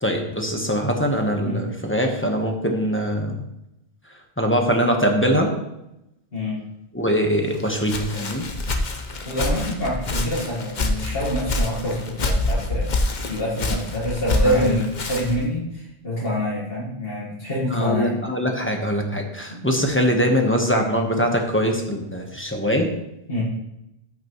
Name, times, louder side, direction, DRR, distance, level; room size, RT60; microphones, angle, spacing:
voice 1, 0.0-3.4 4.4-5.5 6.9-8.5 13.6-13.8 14.4-14.8 17.7-22.9, equal, 10° left, 2 dB, 1.1 m, -22 dB
Walk footsteps, 7.5-15.5, left 2 dB, 45° left, 1.0 m, -26 dB
voice 2, 9.3-12.9 13.3-18.2 19.5-19.6 23.3-23.4, left 1 dB, 60° left, -6 dB, 2.0 m, -26 dB
13.5 x 6.0 x 3.1 m, 0.87 s
omnidirectional pair, 1.1 m